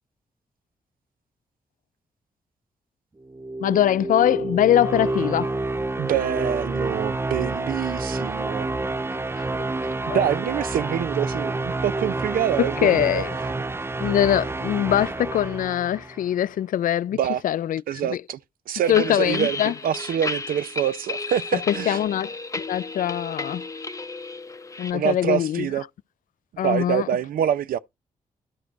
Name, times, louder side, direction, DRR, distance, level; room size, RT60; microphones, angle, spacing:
sound 1, 3.2-16.3, right 2 dB, 15° right, 0.5 m, -28 dB
voice 1, 3.6-5.5 9.3-9.4 10.1-10.3 12.6-13.3 14.0-17.2 17.4-17.8 18.1-18.2 18.9-19.7 21.7-23.6 24.8-25.7 26.6-27.1, left 11 dB, 65° left, 0.4 m, -22 dB
voice 2, 6.0-8.7 10.1-13.5 17.1-17.4 17.9-18.4 18.7-22.0 24.9-25.8 26.5-27.8, right 9 dB, 75° right, 0.6 m, -26 dB
sound 2, 18.8-24.9, left 3 dB, 20° left, 0.8 m, -33 dB
11.5 x 5.0 x 4.0 m
supercardioid pair, 45°, 15 cm